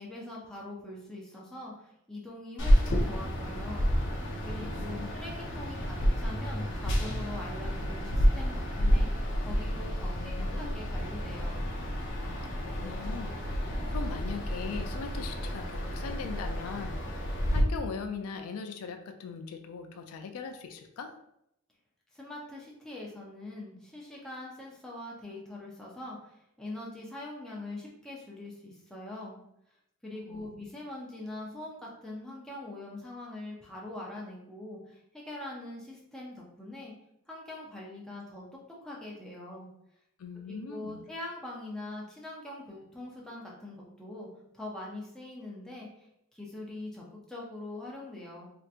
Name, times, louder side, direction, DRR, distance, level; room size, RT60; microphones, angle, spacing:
voice 1, 0.0-3.9 4.4-9.1 9.4-11.6 22.1-29.4 30.0-35.0 35.3-36.9 37.3-38.4 38.8-39.7 40.5-44.3 44.5-46.1 46.3-48.5, left 2 dB, 5° left, -5 dB, 0.5 m, -43 dB
sound 1, 2.6-17.6, equal, 60° left, 0.7 m, -30 dB
voice 2, 4.5-5.1 10.2-10.8 12.2-17.0 17.5-21.1 30.3-30.5 40.2-41.0, left 5 dB, 75° left, 7 dB, 0.3 m, -40 dB
3.3 x 2.8 x 2.4 m, 0.79 s
head